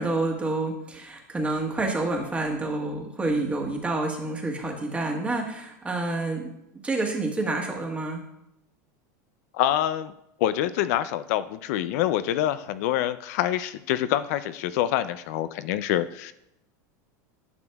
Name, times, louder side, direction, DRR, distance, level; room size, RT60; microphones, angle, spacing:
voice 1, 0.0-6.4 6.8-8.2, right 2 dB, 15° right, 1 dB, 1.4 m, -28 dB
voice 2, 9.5-10.1 10.4-16.3, left 12 dB, 65° left, 13 dB, 0.4 m, -26 dB
10.5 x 6.1 x 2.3 m, 0.80 s
supercardioid pair, 125°, 9 cm